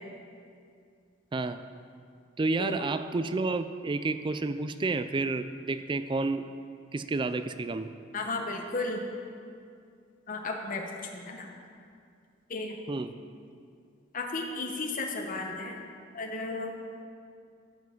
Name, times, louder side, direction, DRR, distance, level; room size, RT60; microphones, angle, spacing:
voice 1, 1.3-1.6 2.4-6.5 6.9-7.9 12.9-13.2, right 3 dB, 25° right, 11 dB, 0.4 m, -30 dB
voice 2, 2.6-2.9 8.1-9.0 10.3-11.5 12.5-12.8 14.1-15.8 16.1-16.8, left 3 dB, 45° left, 1 dB, 1.1 m, -34 dB
12.5 x 5.9 x 7.3 m, 2.3 s
head